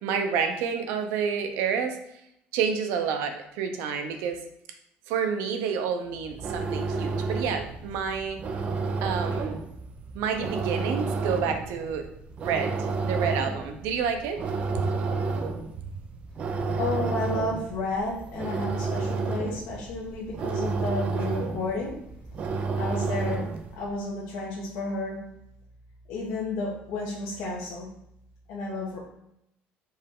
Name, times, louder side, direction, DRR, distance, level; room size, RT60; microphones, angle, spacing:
voice 1, 0.0-2.0 2.5-4.4 5.1-8.4 9.0-9.6 10.1-12.1 12.4-14.4 14.7-14.8, right 6 dB, 85° right, 6 dB, 0.7 m, -29 dB
sound 1, 6.2-23.7, right 4 dB, 30° right, 0.4 m, -31 dB
voice 2, 16.7-22.0 22.8-23.5 23.8-25.2 26.1-27.9 28.5-29.0, left 2 dB, 80° left, -5 dB, 1.0 m, -32 dB
4.5 x 3.2 x 3.6 m, 0.79 s
cardioid pair, 175°, 4 cm